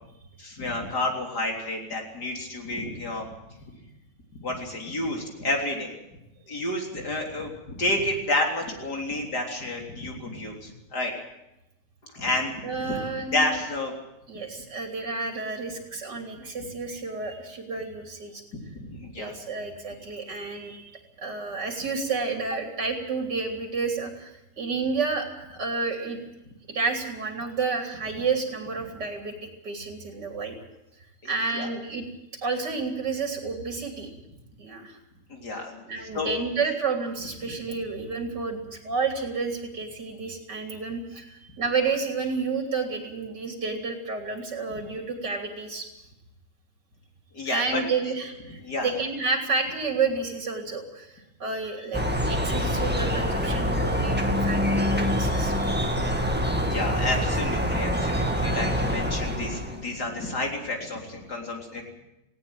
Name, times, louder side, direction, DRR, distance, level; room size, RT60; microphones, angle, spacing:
voice 1, 0.4-3.3 4.3-5.9 6.5-11.1 12.1-13.9 16.4-16.5 18.5-19.3 31.5-31.7 35.3-35.8 36.1-36.3 37.4-37.6 44.7-44.8 47.3-47.8 48.5-48.9 52.0-52.1 56.5-61.8, left 2 dB, 70° left, 1 dB, 4.3 m, -30 dB
voice 2, 12.6-13.6 14.3-18.4 19.2-26.2 26.7-30.6 31.2-32.1 32.4-34.1 34.6-35.0 35.9-45.9 47.5-56.2, right 4 dB, 85° right, 3 dB, 3.6 m, -30 dB
sound 1, 51.9-59.9, equal, 5° right, 1.9 m, -25 dB
19.0 x 17.5 x 9.1 m, 0.91 s
omnidirectional pair, 1.8 m